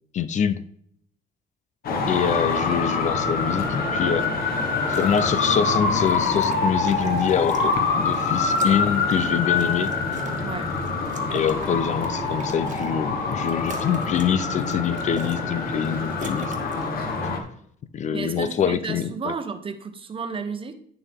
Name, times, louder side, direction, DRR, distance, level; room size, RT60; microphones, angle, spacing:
voice 1, 0.1-0.6 2.1-4.3 4.9-9.9 11.3-16.5 17.9-19.3, left 8 dB, 45° left, 0.6 m, -25 dB
Traffic noise roadway noise, 1.8-17.4, left 4 dB, 65° left, 1.6 m, -25 dB
sound 1, 4.7-5.2 5.6-8.2 8.5-10.4 10.8-12.9 13.3-14.3 14.6-15.5 15.7-16.9, right 6 dB, 45° right, 1.4 m, -42 dB
voice 2, 10.4-10.8 18.1-20.7, right 5 dB, 30° right, 1.1 m, -32 dB
9.1 x 6.9 x 3.6 m
cardioid pair, 110°, 17 cm